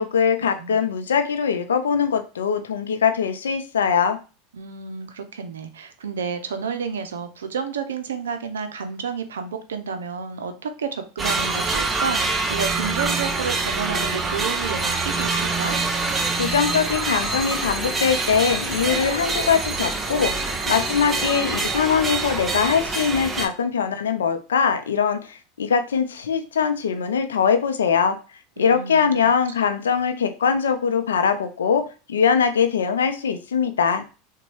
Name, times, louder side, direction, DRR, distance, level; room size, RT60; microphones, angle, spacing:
voice 1, 0.0-4.2 16.3-28.2 28.6-34.0, left 6 dB, 85° left, 7 dB, 0.5 m, -22 dB
voice 2, 4.5-15.8 28.6-29.3, right 6 dB, 85° right, 8 dB, 0.5 m, -31 dB
sound 1, 11.2-23.5, right 3 dB, 20° right, 0.6 m, -25 dB
4.0 x 2.2 x 3.0 m, 0.33 s
hypercardioid pair, 90°, 0 cm